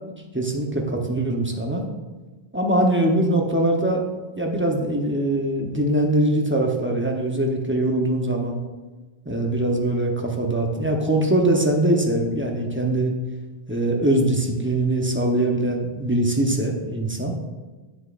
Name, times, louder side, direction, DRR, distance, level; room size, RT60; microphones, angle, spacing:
voice 1, 0.3-1.9 2.5-4.0 4.4-8.6 9.3-13.1 13.7-17.4, right 1 dB, 15° right, 1 dB, 0.7 m, -22 dB
10.0 x 7.4 x 2.5 m, 1.2 s
omnidirectional pair, 1.0 m